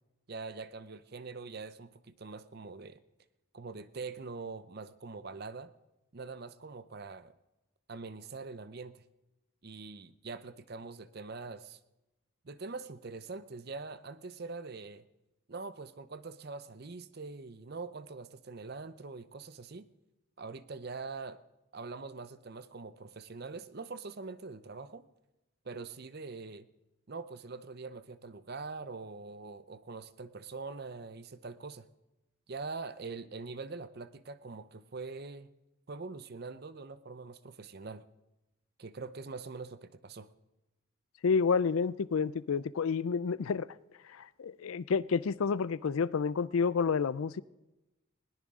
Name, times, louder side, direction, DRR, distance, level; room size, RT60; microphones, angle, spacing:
voice 1, 0.3-3.0 3.5-5.7 6.1-7.3 7.9-9.0 9.6-11.8 12.4-15.1 15.5-19.9 20.4-21.4 21.7-25.0 25.6-26.7 27.1-31.9 32.5-35.5 35.9-38.0 38.8-40.3, right 4 dB, 50° right, 0.6 m, -43 dB
voice 2, 41.2-43.7 44.1-47.4, left 5 dB, 80° left, 0.4 m, -29 dB
20.0 x 18.0 x 3.7 m
head